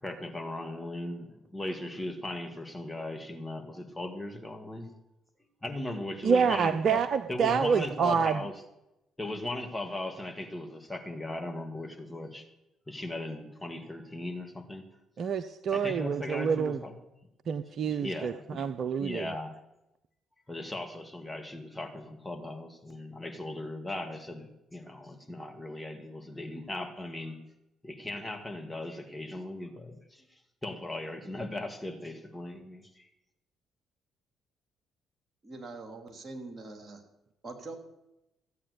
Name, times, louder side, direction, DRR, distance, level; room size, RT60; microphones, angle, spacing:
voice 1, 0.0-4.9 5.6-7.0 7.3-8.5 9.2-12.5 12.9-14.9 15.7-16.9 18.0-18.6 19.0-19.6 20.5-27.4 27.8-30.3 30.6-33.1, left 1 dB, 10° left, 3 dB, 2.4 m, -38 dB
voice 2, 6.2-8.4 15.2-16.8 17.5-19.3, right 6 dB, 55° right, 11 dB, 0.6 m, -27 dB
voice 3, 35.4-37.0 37.4-37.8, right 3 dB, 35° right, 3 dB, 3.1 m, -43 dB
15.0 x 8.6 x 6.9 m, 0.90 s
figure-of-eight pair, 45°, 0 cm